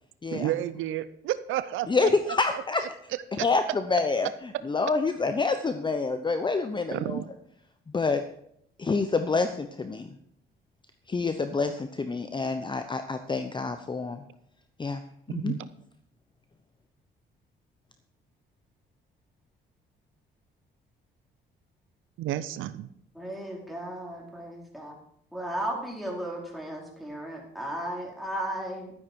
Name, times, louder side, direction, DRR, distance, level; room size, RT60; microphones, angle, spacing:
voice 1, 0.3-2.1 3.4-3.5 6.9-7.2 15.3-15.6 22.2-22.9, right 13 dB, 85° right, 14 dB, 0.6 m, -31 dB
voice 2, 1.9-2.8 3.4-4.3 4.6-7.2 7.9-8.2 8.8-10.1 11.1-14.2 14.8-15.0 15.3-15.5, left 4 dB, 25° left, 8 dB, 0.8 m, -27 dB
voice 3, 23.1-25.0 25.3-28.9, right 1 dB, ahead, -2 dB, 4.5 m, -35 dB
12.5 x 9.9 x 4.7 m, 0.71 s
cardioid pair, 90°, 20 cm